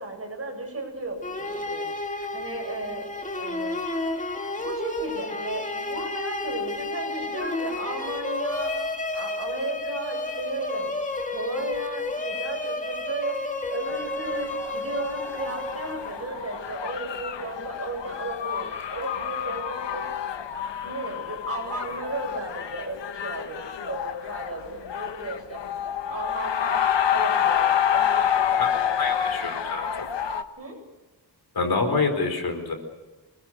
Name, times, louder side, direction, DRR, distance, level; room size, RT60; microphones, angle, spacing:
voice 1, 0.0-3.1 3.4-3.8 4.6-8.7 9.1-10.9 11.3-20.1 20.8-29.1 30.6-30.8, right 2 dB, 35° right, 2 dB, 7.9 m, -35 dB
sound 1, 1.2-16.3, left 2 dB, 20° left, 2.2 m, -31 dB
sound 2, 13.9-30.4, left 9 dB, 85° left, 1.4 m, -28 dB
voice 2, 29.0-29.9 31.5-32.7, left 4 dB, 60° left, 6 dB, 4.4 m, -26 dB
27.0 x 21.0 x 6.5 m, 1.2 s
wide cardioid pair, 140°, 42 cm